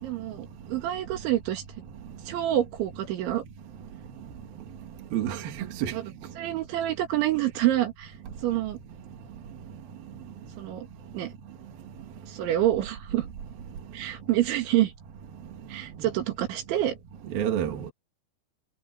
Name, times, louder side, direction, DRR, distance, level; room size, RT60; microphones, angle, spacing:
voice 1, 0.0-1.6 2.3-3.4 5.9-6.0 6.4-8.1 8.4-8.8 10.6-10.9 11.1-11.3 12.3-13.3 13.9-14.9 15.7-17.0, right 13 dB, 85° right, 4.6 m, -27 dB
voice 2, 5.1-5.9 17.3-17.9, right 10 dB, 60° right, 3.5 m, -29 dB
omnidirectional pair, 5.2 m